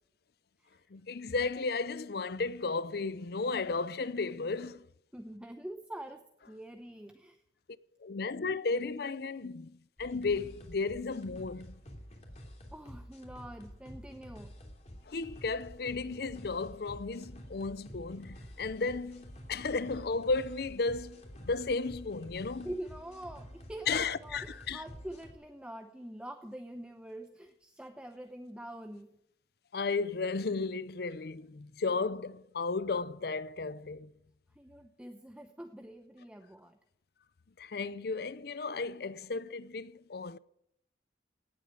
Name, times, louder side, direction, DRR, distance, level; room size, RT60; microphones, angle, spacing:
voice 1, 0.9-4.8 8.0-11.7 15.1-22.7 23.9-24.8 29.7-34.1 37.6-40.4, left 4 dB, 60° left, 0.6 m, -34 dB
voice 2, 5.1-7.4 12.7-14.6 19.6-19.7 22.6-29.1 34.5-36.8, right 1 dB, 5° right, 0.8 m, -45 dB
sound 1, 10.0-25.3, equal, 40° left, 3.2 m, -49 dB
18.0 x 8.5 x 7.6 m
head